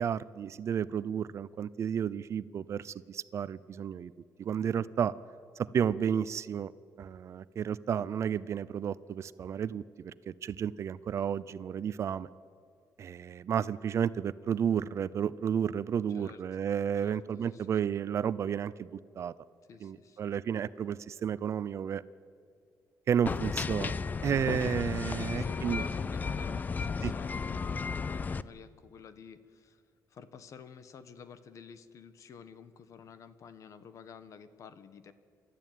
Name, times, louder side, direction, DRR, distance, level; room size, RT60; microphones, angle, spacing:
voice 1, 0.0-4.1 4.4-5.1 5.6-6.7 7.0-12.3 13.0-19.3 19.8-22.0 23.1-24.0 24.2-25.8 27.0-27.1, right 8 dB, 45° right, 17 dB, 0.5 m, -32 dB
voice 2, 16.1-16.4 17.0-17.8 19.7-20.4 25.1-29.8 30.1-35.1, left 6 dB, 50° left, 13 dB, 1.3 m, -50 dB
sound 1, 23.3-28.4, left 5 dB, 25° left, 0.5 m, -34 dB
28.5 x 13.0 x 9.2 m, 2.2 s
cardioid pair, 155°, 7 cm